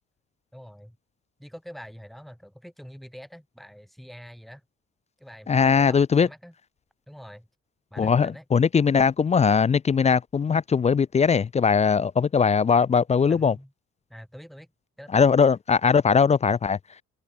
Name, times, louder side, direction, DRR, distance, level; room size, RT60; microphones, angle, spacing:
voice 1, 0.5-1.0 1.4-4.6 5.2-6.5 7.1-7.5 7.9-8.4 13.3-13.7 14.1-14.7 15.0-15.3, equal, ahead, 5.0 m, -45 dB
voice 2, 5.5-6.3 8.0-13.5 15.1-16.8, left 6 dB, 25° left, 0.3 m, -20 dB
cardioid pair, 90°, 30 cm